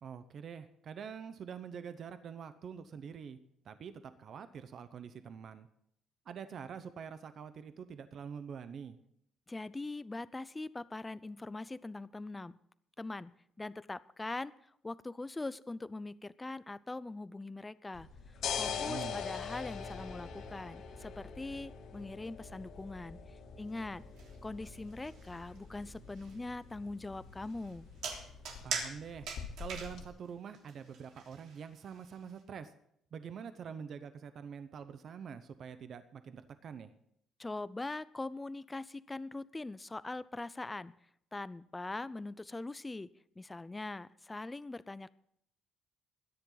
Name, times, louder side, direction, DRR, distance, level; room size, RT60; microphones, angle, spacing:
voice 1, 0.0-3.4 3.6-5.7 6.3-9.0 18.7-19.2 28.6-29.3 29.6-32.7 33.1-36.9, right 7 dB, 45° right, 11 dB, 0.9 m, -45 dB
voice 2, 9.5-12.6 13.0-18.1 18.5-24.0 24.4-27.9 37.4-41.0 41.3-45.1, left 2 dB, 15° left, 17 dB, 0.4 m, -42 dB
sound 1, 17.9-30.1, left 7 dB, 70° left, 2.8 m, -44 dB
sound 2, 23.7-32.4, right 5 dB, 80° right, 3.3 m, -44 dB
22.5 x 10.0 x 4.0 m, 0.70 s
cardioid pair, 145°, 0 cm